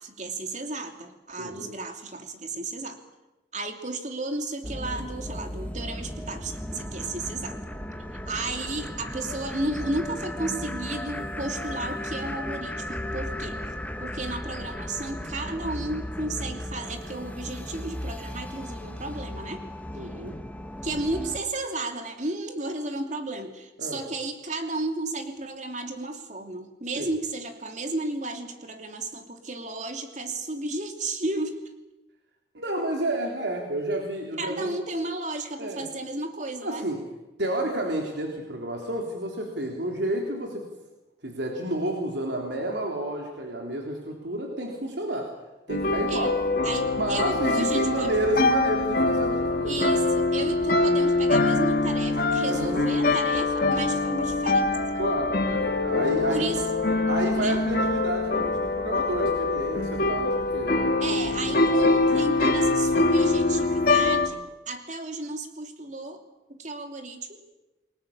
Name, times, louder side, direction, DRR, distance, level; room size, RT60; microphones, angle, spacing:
voice 1, 0.0-3.0 3.5-7.6 8.3-13.6 14.0-19.6 20.0-20.1 20.8-31.6 34.4-36.9 46.1-46.3 46.6-48.2 49.6-54.7 56.3-56.6 57.0-57.6 61.0-64.4 64.7-66.2 66.5-67.4, right 2 dB, 40° right, 5 dB, 2.9 m, -33 dB
voice 2, 1.4-1.7 19.9-20.4 23.8-24.0 27.0-27.1 32.5-34.7 35.6-35.9 36.6-37.0 37.4-40.7 41.2-45.3 45.7-46.3 46.9-49.8 52.4-52.9 54.9-56.5 57.1-61.7, right 1 dB, 70° right, 1 dB, 3.5 m, -30 dB
sound 1, 4.6-21.4, left 1 dB, 10° left, 1.5 m, -35 dB
sound 2, 45.7-64.3, left 2 dB, 50° left, 2.1 m, -24 dB
28.5 x 21.0 x 7.3 m, 1.0 s
head